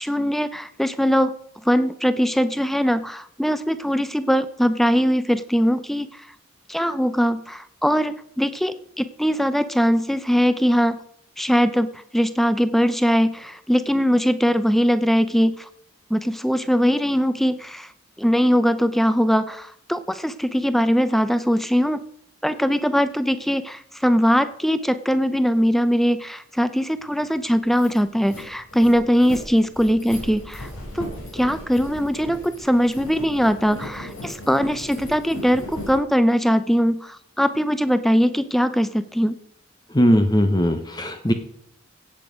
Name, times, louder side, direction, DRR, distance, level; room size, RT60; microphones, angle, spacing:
voice 1, 0.0-1.3 1.7-6.1 6.7-11.0 11.4-15.6 16.1-17.9 18.2-22.0 22.4-30.7 30.9-31.1 31.3-39.4, equal, ahead, 13 dB, 0.6 m, -21 dB
sound 1, 27.1-27.2 27.5-36.0, left 1 dB, 75° left, 6.9 m, -37 dB
voice 2, 39.9-41.3, equal, 20° left, 7 dB, 0.9 m, -19 dB
16.5 x 8.2 x 5.1 m, 0.69 s
head